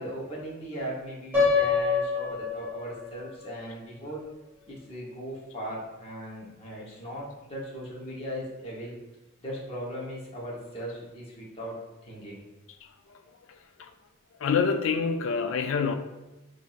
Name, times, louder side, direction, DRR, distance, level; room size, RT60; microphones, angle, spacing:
voice 1, 0.0-4.2 4.7-9.0 9.4-11.8 12.0-12.4, equal, 30° left, -5 dB, 0.9 m, -38 dB
Piano, 1.3-3.3, left 5 dB, 10° right, 1.3 m, -26 dB
voice 2, 14.4-15.9, left 5 dB, 70° left, 8 dB, 0.3 m, -26 dB
5.7 x 2.6 x 2.4 m, 1.0 s
head